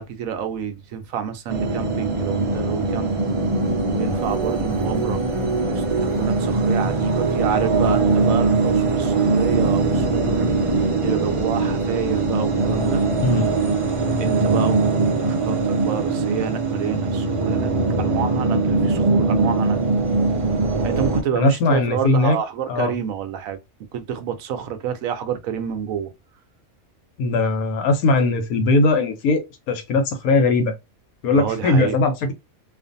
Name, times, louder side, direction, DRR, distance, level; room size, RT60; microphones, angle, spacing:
voice 1, 0.0-3.1 3.9-5.2 5.6-13.0 14.2-17.7 18.0-19.9 20.8-23.6 23.9-26.1 31.3-32.0, right 8 dB, 75° right, 1.0 m, -28 dB
sound 1, 1.5-21.2, right 3 dB, 55° right, 0.3 m, -21 dB
voice 2, 21.3-22.4 22.7-22.9 27.2-29.4 29.7-30.7 31.2-32.3, left 2 dB, 80° left, 1.2 m, -19 dB
2.5 x 2.5 x 2.5 m
omnidirectional pair, 1.5 m